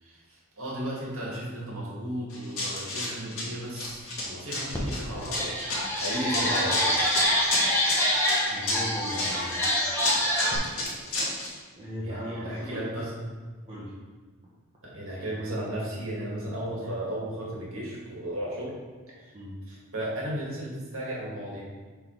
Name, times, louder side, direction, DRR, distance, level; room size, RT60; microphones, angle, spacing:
voice 1, 0.0-5.6 5.9-7.0 11.9-13.3 14.8-18.8 19.2-19.3 19.7-21.6, right 1 dB, 70° right, -5 dB, 2.0 m, -35 dB
Run, 2.3-11.5, left 2 dB, 75° left, 1.7 m, -31 dB
sound 1, 4.7-4.8 5.2-10.6, equal, 10° left, 1.0 m, -26 dB
voice 2, 8.5-9.7 11.7-12.9 13.7-14.0 19.3-19.6, equal, 25° right, -8 dB, 1.0 m, -37 dB
5.7 x 4.0 x 4.6 m, 1.4 s
head